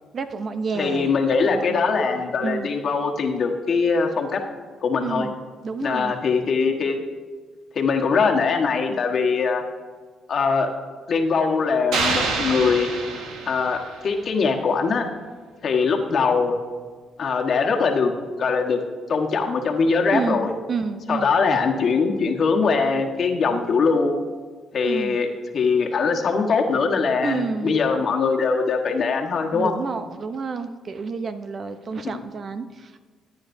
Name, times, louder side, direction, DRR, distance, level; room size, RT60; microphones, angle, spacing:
voice 1, 0.1-1.1 1.4-2.7 5.0-5.3 5.6-6.1 20.1-21.4 24.8-25.2 27.2-27.8 29.5-33.0, right 4 dB, 45° right, 10 dB, 0.7 m, -30 dB
voice 2, 0.7-4.4 4.8-5.3 5.8-7.0 7.7-9.6 10.3-10.7 11.1-12.9 13.5-15.0 15.6-16.6 17.2-18.1 18.4-18.8 19.1-20.5 21.1-24.1 24.7-25.3 25.5-29.7, left 5 dB, 55° left, 2 dB, 1.4 m, -22 dB
sound 1, 11.9-14.1, right 4 dB, 90° right, 1.4 m, -26 dB
15.0 x 9.4 x 2.7 m, 1.5 s
cardioid pair, 90°, 0 cm